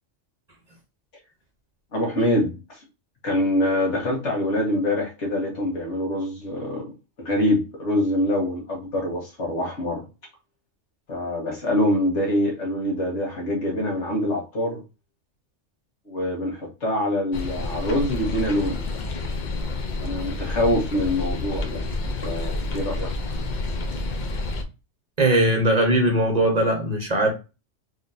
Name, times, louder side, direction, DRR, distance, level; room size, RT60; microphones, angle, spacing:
voice 1, 1.9-2.8 3.2-6.9 7.2-10.0 11.1-14.8 16.1-18.8 20.0-21.8 22.2-23.1, left 1 dB, 65° left, 1.7 m, -25 dB
sound 1, 17.3-24.6, left 2 dB, 50° left, 0.6 m, -29 dB
voice 2, 25.2-27.3, right 1 dB, 40° right, 0.8 m, -20 dB
4.0 x 3.1 x 2.6 m
omnidirectional pair, 1.3 m